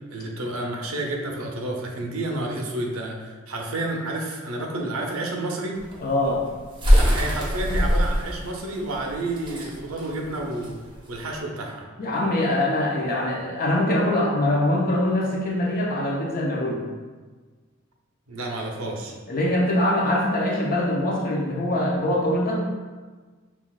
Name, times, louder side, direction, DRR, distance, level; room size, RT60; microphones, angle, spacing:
voice 1, 0.1-5.8 7.0-10.7 11.1-11.8 18.3-19.1, right 2 dB, 90° right, 0 dB, 0.7 m, -30 dB
sound 1, 5.8-11.4, equal, 25° right, 0.7 m, -23 dB
voice 2, 6.0-6.4 12.0-16.8 19.3-22.6, left 1 dB, 45° left, -2 dB, 0.7 m, -23 dB
5.6 x 2.4 x 2.3 m, 1.4 s
head